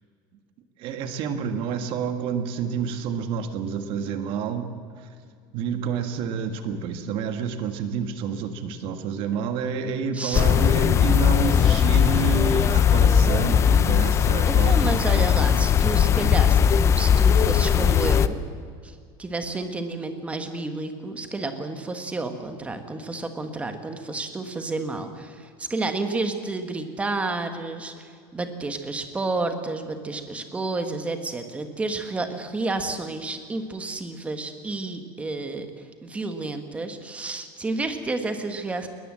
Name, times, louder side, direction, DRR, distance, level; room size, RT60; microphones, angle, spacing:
voice 1, 0.8-5.1 5.5-15.3, right 6 dB, 50° right, 8 dB, 1.6 m, -29 dB
voice 2, 10.1-10.4 14.5-18.4 18.8-18.9 19.2-35.7 36.0-38.9, right 3 dB, 10° right, 7 dB, 1.6 m, -30 dB
sound 1, 10.3-18.3, left 8 dB, 25° left, 0.6 m, -19 dB
21.0 x 20.5 x 7.6 m, 2.1 s
cardioid pair, 165°, 11 cm